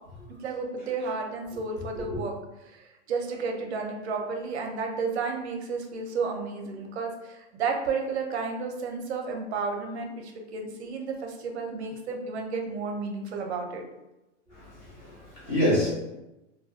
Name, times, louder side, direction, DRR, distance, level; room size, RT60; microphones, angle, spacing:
voice 1, 0.4-2.3 2.6-13.8, right 4 dB, 60° right, 3 dB, 0.5 m, -32 dB
voice 2, 14.5-15.9, left 1 dB, 15° left, -9 dB, 0.7 m, -28 dB
2.5 x 2.2 x 2.3 m, 0.98 s
hypercardioid pair, 165°, 38 cm